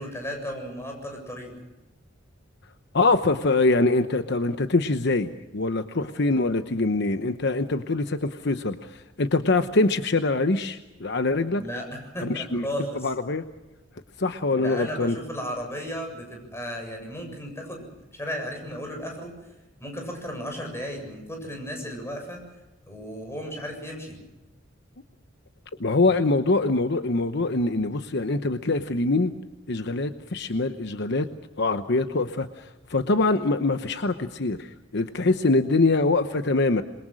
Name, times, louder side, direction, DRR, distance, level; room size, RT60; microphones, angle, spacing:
voice 1, 0.0-1.5 11.6-13.1 14.5-19.3 19.8-22.4 22.9-24.2, equal, 15° left, 2 dB, 7.5 m, -35 dB
voice 2, 2.9-11.6 12.2-12.7 13.0-13.4 14.2-15.2 25.8-29.3 29.7-31.3 31.6-36.8, left 3 dB, 60° left, 9 dB, 1.0 m, -24 dB
27.5 x 22.5 x 6.3 m, 1.0 s
head